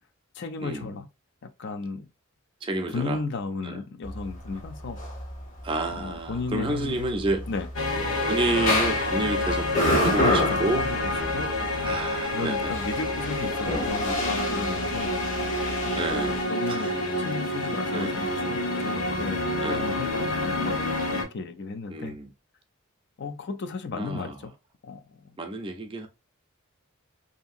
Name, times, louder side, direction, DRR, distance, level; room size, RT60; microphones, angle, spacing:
voice 1, 0.3-1.1 1.4-2.1 2.9-5.0 5.9-7.1 7.5-7.7 10.2-11.0 11.3-11.8 12.3-15.2 15.8-16.9 17.2-22.2 23.2-24.5 24.8-25.4, left 4 dB, 55° left, 0.4 m, -34 dB
voice 2, 2.6-3.2 3.6-3.8 5.6-7.5 8.2-9.7 10.0-10.9 11.8-12.8 13.7-13.9 16.0-16.4 16.7-16.9 17.9-18.1 19.6-19.9 20.5-20.7 21.9-22.3 23.9-24.4 25.4-26.1, right 2 dB, 25° right, 0.4 m, -30 dB
sound 1, 4.0-16.4, left 1 dB, 40° left, 0.8 m, -30 dB
sound 2, 7.8-21.2, left 1 dB, 75° left, 0.9 m, -28 dB
2.7 x 2.7 x 2.4 m
head